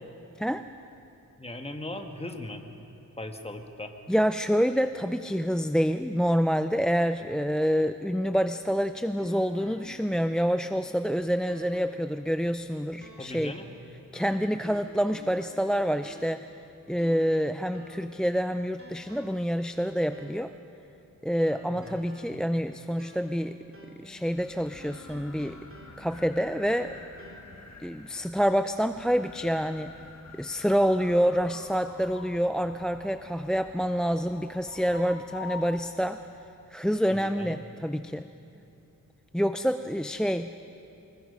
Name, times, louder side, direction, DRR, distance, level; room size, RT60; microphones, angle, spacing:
voice 1, 0.4-0.7 4.1-13.5 14.1-16.5 16.9-20.5 21.2-23.6 24.0-25.6 26.0-26.9 27.8-29.9 30.4-36.2 36.7-38.3 39.3-40.6, equal, ahead, 10 dB, 0.4 m, -27 dB
voice 2, 1.4-2.6 3.2-3.9 13.2-13.6 21.7-22.0 37.1-37.6, left 1 dB, 20° left, 5 dB, 1.5 m, -38 dB
sound 1, 8.6-10.3 10.7-10.8 11.5-12.0 13.0-13.8 14.1-15.6 16.0-16.5 17.0-18.3 18.8-19.5 20.1-20.5 21.5-23.5 23.7-24.1 24.8-26.3 26.8-27.4, equal, 40° right, 2.8 m, -51 dB
sound 2, 24.1-36.3, left 5 dB, 50° left, 1.5 m, -47 dB
25.0 x 20.0 x 5.4 m, 2.8 s
wide cardioid pair, 115°, 34 cm